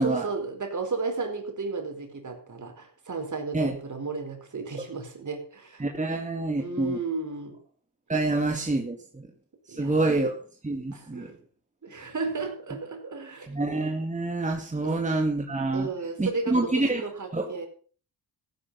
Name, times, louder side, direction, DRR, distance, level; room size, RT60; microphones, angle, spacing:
voice 1, 0.0-5.9 6.6-7.6 9.7-10.3 10.9-11.4 11.8-13.5 14.8-14.9 15.7-17.7, right 4 dB, 45° right, 4 dB, 4.6 m, -34 dB
voice 2, 5.8-7.0 8.1-9.3 9.7-10.4 10.6-11.3 13.5-15.9 16.2-17.0 17.3-17.5, right 2 dB, 20° right, 2 dB, 2.2 m, -27 dB
15.5 x 9.9 x 5.6 m, 0.42 s
cardioid pair, 70°, 40 cm